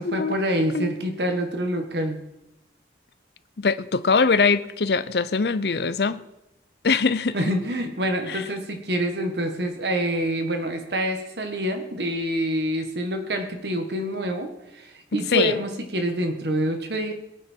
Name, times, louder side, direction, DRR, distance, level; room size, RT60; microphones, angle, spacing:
voice 1, 0.0-2.2 7.3-17.1, equal, 65° right, 1.6 m, -26 dB
voice 2, 3.6-6.2 6.8-7.4 8.3-8.4 15.3-15.5, left 4 dB, 65° left, 0.7 m, -22 dB
22.0 x 9.2 x 4.5 m
head